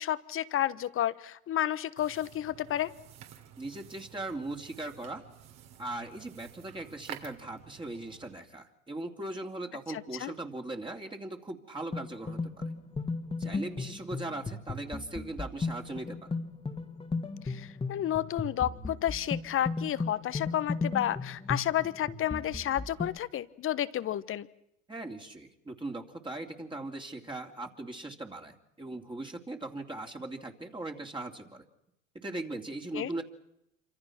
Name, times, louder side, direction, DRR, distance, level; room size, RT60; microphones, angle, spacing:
voice 1, 0.0-2.9 9.9-10.3 17.4-24.5 32.9-33.1, left 11 dB, 35° left, 16 dB, 1.2 m, -31 dB
sound 1, 2.0-8.3, right 10 dB, 55° right, 3.7 m, -50 dB
voice 2, 3.6-5.2 5.8-12.7 13.4-16.4 24.9-31.6 32.2-33.2, right 2 dB, 10° right, 2 dB, 2.7 m, -39 dB
sound 2, 11.9-23.2, left 3 dB, 15° left, 2.1 m, -35 dB
27.5 x 25.5 x 6.0 m, 0.80 s
hypercardioid pair, 90°, 39 cm